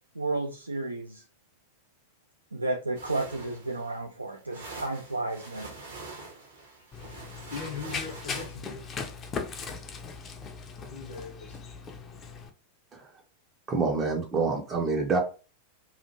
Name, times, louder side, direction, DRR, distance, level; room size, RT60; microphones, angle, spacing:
voice 1, 0.1-1.2 2.5-5.7, right 2 dB, 80° right, 3 dB, 0.3 m, -32 dB
sound 1, 2.9-8.5, right 3 dB, 65° right, 0.9 m, -44 dB
Run, 6.9-12.5, left 5 dB, 25° left, 0.5 m, -39 dB
voice 2, 7.5-8.8 10.9-11.6, left 5 dB, 55° left, -2 dB, 0.7 m, -40 dB
voice 3, 13.7-15.2, right 4 dB, 25° right, 2 dB, 0.5 m, -27 dB
2.8 x 2.4 x 2.7 m, 0.35 s
figure-of-eight pair, 90°, 0 cm